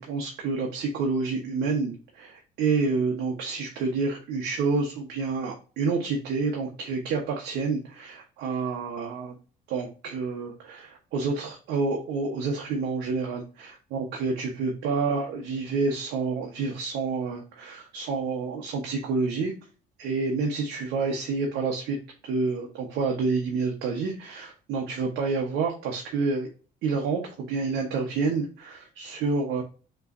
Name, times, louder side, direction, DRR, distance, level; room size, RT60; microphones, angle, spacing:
voice 1, 0.0-9.4 9.7-19.5 20.0-22.0 22.2-26.5 26.8-29.6, right 4 dB, 80° right, 0 dB, 1.0 m, -28 dB
5.6 x 3.1 x 2.5 m, 0.36 s
cardioid pair, 110°, 17 cm